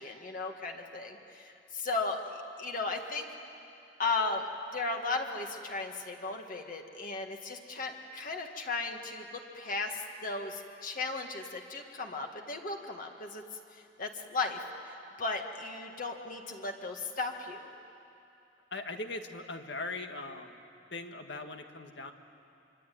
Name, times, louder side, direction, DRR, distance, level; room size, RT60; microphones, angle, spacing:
voice 1, 0.0-3.3 4.0-4.5 4.7-13.4 14.0-14.6 15.2-17.7, left 3 dB, 50° left, 3 dB, 1.9 m, -36 dB
voice 2, 18.7-20.6 20.9-22.1, left 2 dB, 70° left, 5 dB, 1.8 m, -40 dB
25.5 x 24.5 x 9.4 m, 2.9 s
head